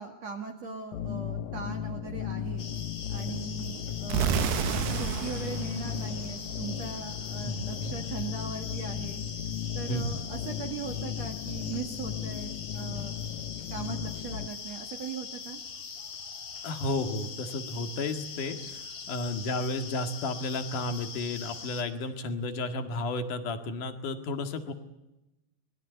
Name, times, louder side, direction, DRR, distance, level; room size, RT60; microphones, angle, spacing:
voice 1, 0.0-2.6 3.1-4.4 4.9-9.2 9.7-13.2 13.7-15.6, right 6 dB, 50° right, 4 dB, 2.6 m, -39 dB
sound 1, 0.9-14.5, left 10 dB, 75° left, 1.7 m, -36 dB
sound 2, 2.6-21.8, left 5 dB, 40° left, 2.9 m, -42 dB
sound 3, 4.1-7.0, right 8 dB, 75° right, 3.0 m, -31 dB
voice 2, 7.4-8.0 9.9-10.2 16.6-18.8 19.1-24.7, left 2 dB, 55° left, 7 dB, 3.1 m, -32 dB
24.0 x 21.0 x 8.1 m, 0.94 s
omnidirectional pair, 4.6 m